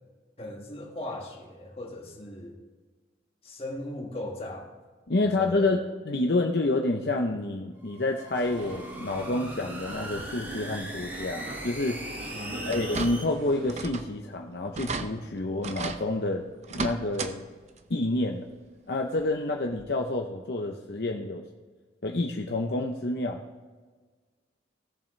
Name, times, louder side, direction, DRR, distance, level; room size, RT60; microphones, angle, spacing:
voice 1, 0.4-2.6 3.4-4.7 5.2-5.7 12.3-12.9, left 1 dB, 30° left, 0 dB, 1.8 m, -38 dB
voice 2, 5.1-12.0 12.7-16.4 16.7-17.5 17.9-18.5 18.9-21.4 22.0-23.4, left 2 dB, 60° left, 1 dB, 0.7 m, -28 dB
sound 1, 7.8-13.2, right 1 dB, 10° right, 1.3 m, -41 dB
sound 2, 8.3-13.8, right 1 dB, 70° right, 2.3 m, -40 dB
sound 3, 12.7-13.4 13.7-14.1 14.4-14.5 14.7-15.1 15.6-16.0 16.6-17.3 17.7-17.8 19.2-19.3 19.8-19.9, right 3 dB, 40° right, 0.6 m, -33 dB
17.0 x 7.2 x 3.2 m, 1.4 s
head